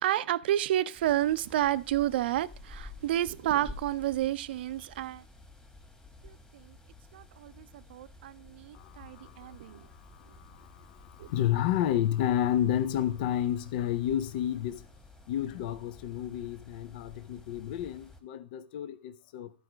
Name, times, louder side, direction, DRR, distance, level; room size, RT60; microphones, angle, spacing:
voice 1, 0.0-5.2 6.2-6.8 7.1-9.9 11.2-11.3, right 13 dB, 65° right, 0.5 m, -30 dB
sound 1, 0.9-18.2, left 2 dB, 10° left, 1.7 m, -52 dB
voice 2, 8.7-14.9 15.3-19.5, left 11 dB, 55° left, 0.6 m, -31 dB
12.0 x 4.9 x 5.0 m
hypercardioid pair, 110°, 6 cm